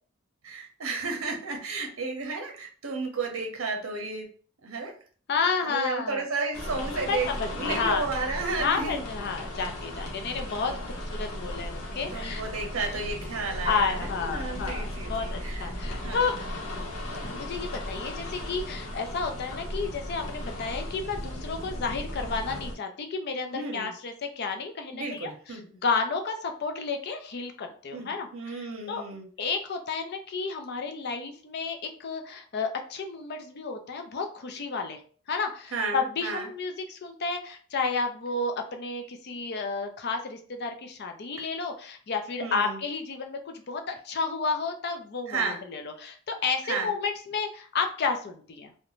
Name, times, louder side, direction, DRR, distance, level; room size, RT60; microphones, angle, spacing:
voice 1, 0.4-4.3 4.6-4.9 5.6-9.0 12.1-16.5 23.5-23.9 24.9-25.6 27.9-29.3 35.7-36.5 42.4-42.8 45.3-45.6 46.6-46.9, right 3 dB, 70° right, 3 dB, 0.7 m, -33 dB
voice 2, 5.3-6.2 6.9-8.1 8.6-12.4 13.6-16.4 17.3-25.3 25.8-29.0 29.4-35.0 35.3-48.7, left 4 dB, 50° left, 5 dB, 0.4 m, -31 dB
sound 1, 6.5-22.7, left 1 dB, 90° left, 0.8 m, -36 dB
2.5 x 2.1 x 2.9 m, 0.43 s
head